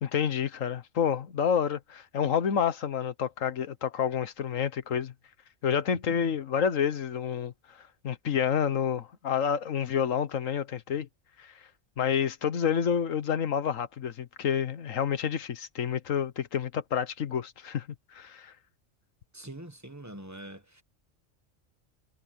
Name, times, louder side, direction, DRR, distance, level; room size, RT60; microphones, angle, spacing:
voice 1, 0.0-5.1 5.6-7.5 8.0-11.1 11.4-11.5 12.0-17.9 18.1-18.5, left 8 dB, 80° left, 1.4 m, -29 dB
voice 2, 19.3-20.8, right 1 dB, 15° right, 1.3 m, -44 dB
omnidirectional pair, 1.3 m